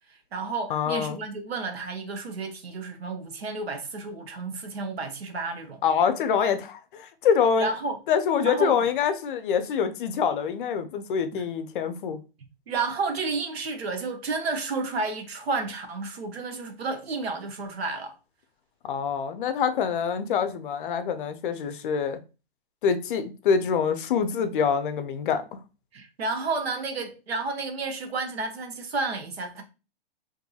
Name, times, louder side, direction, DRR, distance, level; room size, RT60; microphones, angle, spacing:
voice 1, 0.1-5.8 7.6-8.0 8.4-8.8 11.3-11.4 12.7-18.1 25.9-29.6, right 3 dB, 85° right, 0.7 m, -31 dB
voice 2, 0.7-1.2 5.8-7.7 8.1-12.2 18.8-22.2 22.8-25.4, left 7 dB, 55° left, 0.5 m, -25 dB
2.6 x 2.6 x 2.3 m
hypercardioid pair, 125°, 30 cm